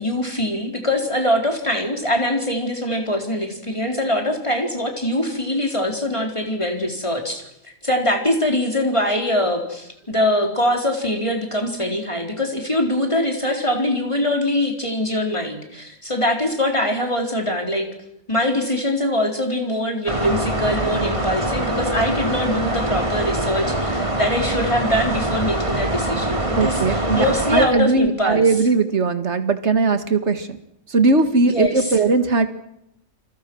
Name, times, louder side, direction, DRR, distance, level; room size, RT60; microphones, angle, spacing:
voice 1, 0.0-17.9 18.3-28.4 31.4-31.9, left 1 dB, 20° left, 3 dB, 4.2 m, -23 dB
sound 1, 20.1-27.7, right 1 dB, 25° right, 2.7 m, -24 dB
voice 2, 26.6-30.6 30.9-32.5, right 3 dB, 55° right, 9 dB, 2.1 m, -19 dB
29.5 x 25.0 x 6.3 m, 0.80 s
omnidirectional pair, 1.4 m